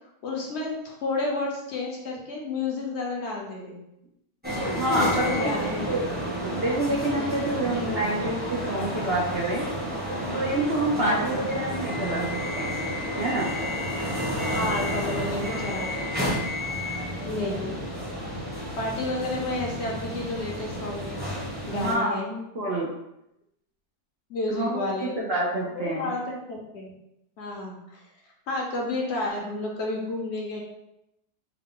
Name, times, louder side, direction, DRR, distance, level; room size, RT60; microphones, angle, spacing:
voice 1, 0.2-3.8 5.0-6.0 7.3-7.4 11.0-11.5 14.5-15.9 17.3-17.8 18.8-21.2 21.7-22.3 24.3-25.2 25.7-26.9 27.4-28.0 28.5-30.6, left 2 dB, 60° left, -1 dB, 0.7 m, -31 dB
sound 1, 4.4-21.9, equal, 10° right, 0.6 m, -31 dB
voice 2, 4.6-9.6 10.3-12.3 12.5-12.8 13.2-13.5 21.7-22.9 24.5-26.1, right 1 dB, 75° right, -5 dB, 0.5 m, -28 dB
4.5 x 2.2 x 3.7 m, 0.85 s
omnidirectional pair, 1.9 m